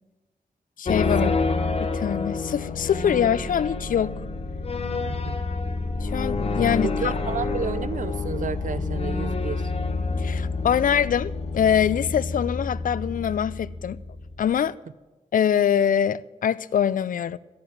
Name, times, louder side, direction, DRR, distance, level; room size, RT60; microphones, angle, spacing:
voice 1, 0.8-1.4 1.8-4.2 6.0-7.1 10.2-14.0 14.4-14.7 15.3-17.4, left 8 dB, 75° left, 0.5 m, -24 dB
sound 1, 0.8-14.6, left 3 dB, 45° left, 1.1 m, -28 dB
voice 2, 6.8-9.7, right 7 dB, 65° right, 0.6 m, -31 dB
15.0 x 7.4 x 9.3 m
wide cardioid pair, 130°, 14 cm